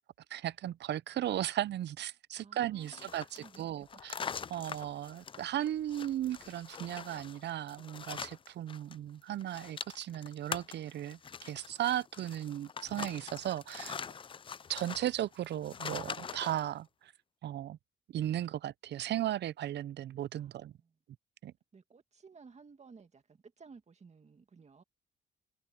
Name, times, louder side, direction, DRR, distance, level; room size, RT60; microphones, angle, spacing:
voice 1, 0.3-4.1 4.5-14.0 14.7-17.1 17.4-17.8 18.1-20.7 21.4-21.5, right 12 dB, 60° right, 0.5 m, -36 dB
voice 2, 2.3-3.9 4.5-4.7 20.3-21.0 21.7-24.8, right 5 dB, 35° right, 2.2 m, -57 dB
sound 1, 2.8-9.0 9.2-16.7, left 6 dB, 25° left, 0.4 m, -44 dB
cardioid pair, 90°, 20 cm